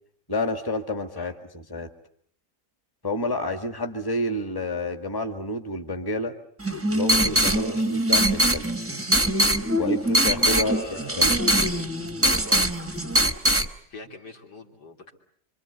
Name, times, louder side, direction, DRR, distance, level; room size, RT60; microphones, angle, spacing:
voice 1, 0.3-1.9 3.0-6.3 6.9-8.7 9.8-11.4, left 1 dB, 15° left, 6 dB, 1.7 m, -29 dB
sound 1, 6.6-13.7, right 1 dB, 10° right, 0.9 m, -22 dB
voice 2, 7.5-7.8 10.2-11.4 11.8-11.9 12.2-12.6 13.9-15.1, left 1 dB, 80° left, 2 dB, 3.6 m, -42 dB
26.0 x 26.0 x 8.1 m, 0.63 s
omnidirectional pair, 1.8 m